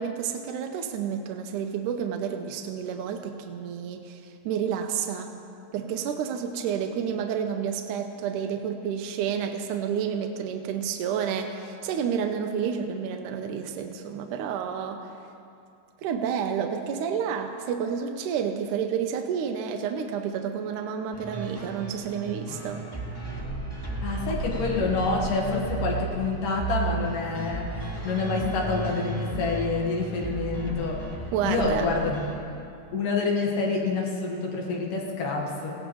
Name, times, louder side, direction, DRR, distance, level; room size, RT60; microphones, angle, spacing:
voice 1, 0.0-5.3 5.7-15.0 16.0-22.9 31.3-31.9, right 7 dB, 75° right, 4 dB, 2.1 m, -30 dB
sound 1, 21.1-32.3, right 3 dB, 10° left, 1.5 m, -34 dB
voice 2, 24.0-31.1 31.4-32.2 32.9-35.8, left 4 dB, 75° left, -2 dB, 3.2 m, -27 dB
18.5 x 16.5 x 3.1 m, 2.6 s
omnidirectional pair, 3.8 m